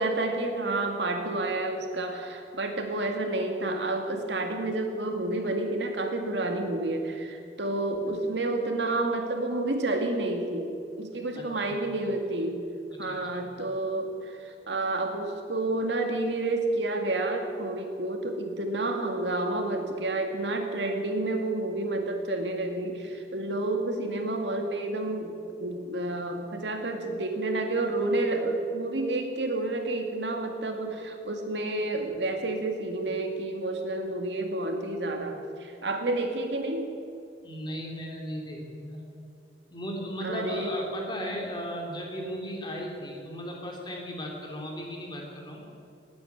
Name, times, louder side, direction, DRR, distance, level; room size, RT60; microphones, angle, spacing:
voice 1, 0.0-10.7 11.0-12.6 13.0-36.9 40.2-40.7, right 2 dB, 90° right, 4 dB, 2.1 m, -30 dB
voice 2, 11.3-11.9 13.0-13.4 37.4-39.0 39.7-45.6, equal, 25° left, 0 dB, 3.0 m, -36 dB
19.0 x 9.5 x 8.1 m, 2.5 s
head